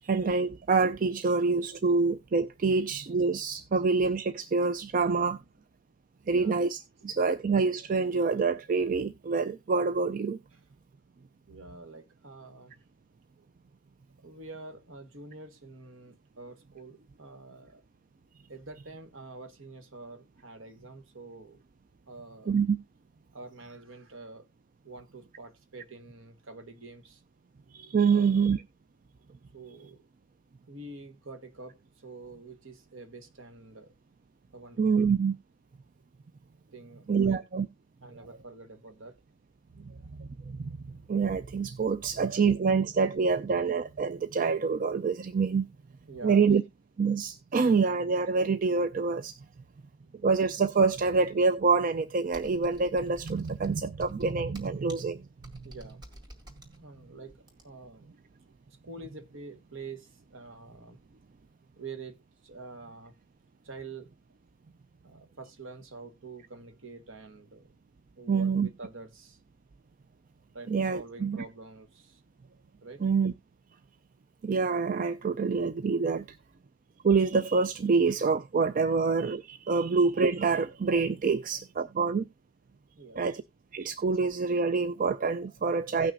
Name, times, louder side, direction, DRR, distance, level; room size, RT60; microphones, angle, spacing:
voice 1, 0.0-5.4 6.3-10.4 22.5-22.8 27.7-28.6 34.8-35.4 37.1-37.7 40.2-45.7 46.2-46.6 47.0-49.4 50.2-55.2 68.3-68.7 70.7-71.4 73.0-73.3 74.4-76.4 77.0-82.3 83.2-83.4 83.7-86.1, right 4 dB, 40° right, 0.4 m, -26 dB
voice 2, 5.0-5.6 6.2-6.6 7.0-7.1 10.5-10.7 11.5-12.8 14.2-17.8 18.5-21.6 22.1-22.6 23.3-24.5 24.8-27.2 28.0-28.6 29.5-30.1 30.7-33.9 34.5-35.1 36.7-37.4 38.0-39.2 40.0-40.1 43.0-43.1 46.1-46.5 55.6-56.0 56.7-58.1 58.5-61.0 61.8-62.2 62.4-63.1 63.6-64.1 65.0-67.7 68.2-69.4 70.5-72.2 72.8-73.1 83.0-83.4 85.6-85.7, right 3 dB, 65° right, 1.3 m, -47 dB
Computer keyboard, 52.3-57.9, right 1 dB, 20° right, 2.1 m, -51 dB
17.0 x 6.0 x 2.5 m
head